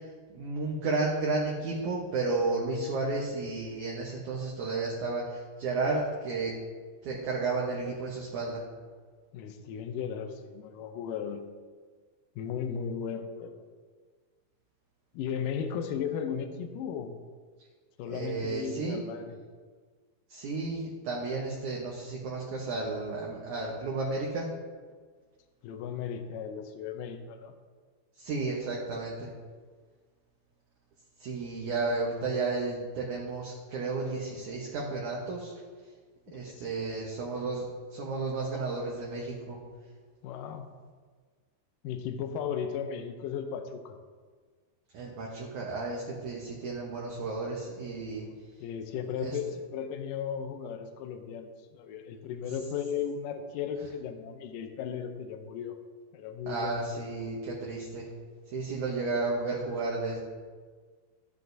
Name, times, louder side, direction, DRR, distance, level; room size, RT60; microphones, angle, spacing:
voice 1, 0.3-6.5 7.0-8.6 18.1-19.0 20.3-24.5 28.2-29.3 31.2-35.5 36.3-39.6 44.9-48.3 49.2-49.4 56.5-58.1 58.5-60.2, right 3 dB, 65° right, -3 dB, 2.1 m, -32 dB
voice 2, 9.3-11.4 12.4-13.6 15.1-17.2 18.0-19.4 25.6-27.6 36.3-36.7 40.2-40.7 41.8-44.0 48.6-55.8 56.1-56.9 58.9-59.0, left 7 dB, 80° left, 7 dB, 1.9 m, -36 dB
13.0 x 8.3 x 2.7 m, 1.5 s
omnidirectional pair, 4.5 m